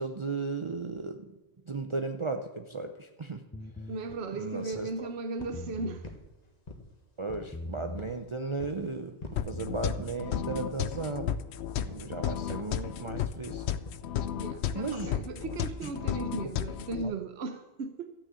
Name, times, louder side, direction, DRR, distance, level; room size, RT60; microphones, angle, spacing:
voice 1, 0.0-1.3 1.7-3.4 4.3-4.9 7.2-9.2 9.4-11.4 11.8-13.7 14.7-15.1 15.8-15.9 17.0-17.1, right 3 dB, 35° right, 4 dB, 0.6 m, -35 dB
sound 1, 3.5-4.0 5.4-6.1 7.5-8.1 9.4-10.1, left 2 dB, 15° left, 0.4 m, -41 dB
voice 2, 3.9-6.1 14.4-18.1, right 3 dB, 75° right, 7 dB, 1.1 m, -36 dB
sound 2, 4.1-4.2 4.7-5.0 5.4-5.7 6.0-6.9 7.3-7.6 8.0-8.2 8.6-8.8 9.2-9.5 9.9-10.1 10.5-10.8 11.1-11.4 11.8-12.0 12.5-12.8 13.2-13.3 13.9-14.0, left 3 dB, 40° left, 1.6 m, -44 dB
sound 3, 9.4-17.0, left 9 dB, 85° left, 0.9 m, -33 dB
13.5 x 6.5 x 8.8 m, 1.1 s
omnidirectional pair, 1.1 m